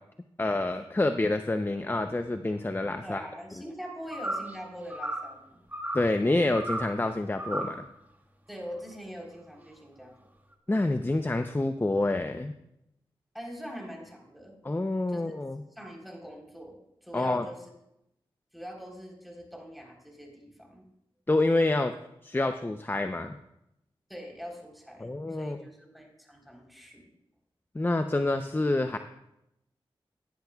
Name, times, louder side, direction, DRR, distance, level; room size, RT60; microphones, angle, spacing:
voice 1, 0.4-3.3 5.9-7.9 10.7-12.5 14.6-15.6 17.1-17.5 21.3-21.9 22.2-23.4 25.0-25.6 27.7-29.0, left 2 dB, 20° left, 8 dB, 0.6 m, -27 dB
voice 2, 3.0-5.6 8.5-10.1 13.3-14.5 15.1-15.3 15.7-17.6 18.5-20.8 24.1-27.1, equal, ahead, 0 dB, 3.8 m, -43 dB
sound 1, 4.1-4.6 4.9-5.3 5.7-6.1 6.5-7.0 7.4-7.8, right 1 dB, 20° right, 1.6 m, -34 dB
16.0 x 10.0 x 2.4 m, 0.82 s
cardioid pair, 40°, 10 cm